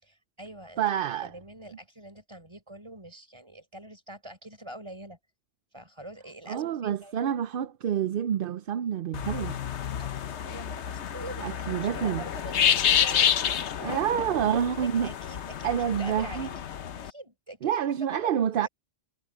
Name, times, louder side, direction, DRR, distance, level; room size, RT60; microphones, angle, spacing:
voice 1, 0.0-0.8 1.2-5.2 5.7-7.1 10.0-10.1 10.4-13.5 13.8-14.1 14.5-16.7 17.0-18.3 18.6-18.7, right 1 dB, 25° right, 5.7 m, -44 dB
voice 2, 0.8-1.3 6.5-9.6 11.4-12.2 13.8-15.1 15.6-16.5 17.6-18.7, right 9 dB, 60° right, 0.7 m, -28 dB
sound 1, 9.1-17.1, left 9 dB, 70° left, 1.1 m, -29 dB
omnidirectional pair, 1.2 m